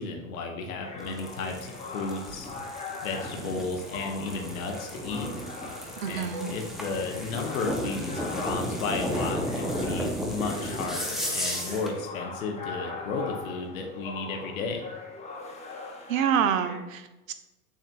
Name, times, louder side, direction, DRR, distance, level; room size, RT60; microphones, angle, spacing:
voice 1, 0.0-2.5 3.0-5.3 6.1-14.8, left 4 dB, 75° left, 3 dB, 0.7 m, -33 dB
sound 1, 0.8-16.8, left 3 dB, 15° left, 0.8 m, -41 dB
sound 2, 1.0-12.0, equal, ahead, 0.5 m, -34 dB
voice 2, 6.0-6.5 16.1-17.3, right 8 dB, 70° right, 10 dB, 0.6 m, -27 dB
7.1 x 2.4 x 2.3 m, 0.99 s
hypercardioid pair, 90°, 42 cm